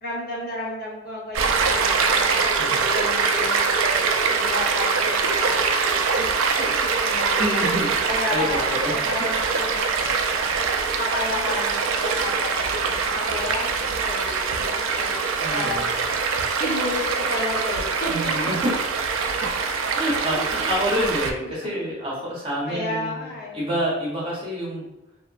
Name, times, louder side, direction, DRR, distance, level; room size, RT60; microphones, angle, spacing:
voice 1, 0.0-5.6 6.1-6.3 6.6-7.7 8.0-10.1 11.0-16.0 16.6-18.3 20.5-20.6 21.4-21.9 22.7-23.7, left 2 dB, 50° left, -5 dB, 0.8 m, -32 dB
Stream, 1.3-21.3, right 5 dB, 90° right, 0.3 m, -23 dB
voice 2, 7.4-7.9 8.3-9.0 15.4-15.9 18.1-18.7 19.4-19.5 19.9-23.3 23.5-24.8, equal, 30° right, -5 dB, 0.7 m, -27 dB
2.9 x 2.0 x 2.4 m, 0.96 s
head